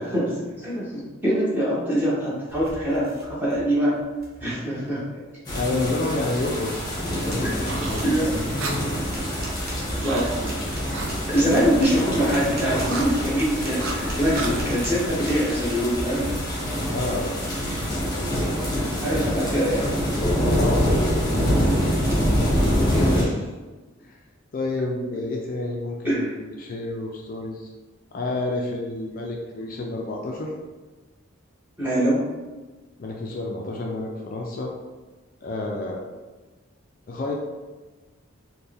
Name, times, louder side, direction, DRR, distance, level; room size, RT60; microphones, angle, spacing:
voice 1, 0.1-4.0 4.4-5.0 7.4-7.6 8.0-8.4 9.9-10.6 11.3-16.3 18.7-20.0 22.9-23.3 26.0-26.3 31.8-32.2, equal, 10° right, -8 dB, 1.0 m, -24 dB
sound 1, 2.5-3.7 4.0-4.5 6.4-6.5 7.0-16.6 19.0-19.7 20.2-20.5 21.1-21.6 22.1-22.3, right 1 dB, 50° right, 0.8 m, -38 dB
voice 2, 5.5-6.7 7.2-8.0 11.3-11.6 16.9-17.4 19.1-19.3 20.5-21.0 22.8-23.5 24.0-24.2 24.5-27.7 28.1-30.5 33.0-34.7 35.4-36.1 37.1-37.3, left 2 dB, 40° left, 0 dB, 0.3 m, -29 dB
sound 2, 5.5-23.2, equal, 20° left, 1.0 m, -25 dB
sound 3, 6.6-11.5 12.6-14.6, right 3 dB, 65° right, 0.5 m, -36 dB
4.2 x 2.2 x 3.4 m, 1.2 s
head